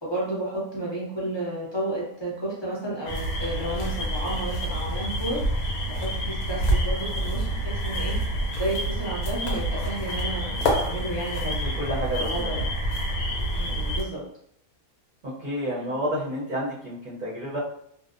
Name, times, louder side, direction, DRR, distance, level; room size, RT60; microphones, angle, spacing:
voice 1, 0.0-5.4 5.9-8.2 8.5-11.8 12.1-12.6 13.5-14.2 15.8-15.9, right 1 dB, 25° left, -6 dB, 0.6 m, -32 dB
sound 1, 3.1-14.0, equal, 90° left, 1.1 m, -27 dB
voice 2, 11.3-12.5 15.2-17.6, equal, 50° right, -8 dB, 0.6 m, -30 dB
2.6 x 2.1 x 2.4 m, 0.67 s
omnidirectional pair, 1.5 m